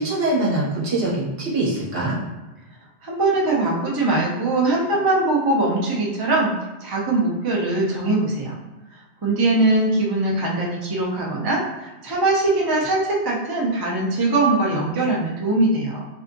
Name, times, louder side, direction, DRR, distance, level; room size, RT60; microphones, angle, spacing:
voice 1, 0.0-2.2, right 2 dB, 55° right, -6 dB, 1.2 m, -23 dB
voice 2, 3.0-6.5 6.8-8.6 9.2-16.1, right 2 dB, 40° right, -3 dB, 0.3 m, -21 dB
3.4 x 2.7 x 2.5 m, 1.1 s
omnidirectional pair, 1.2 m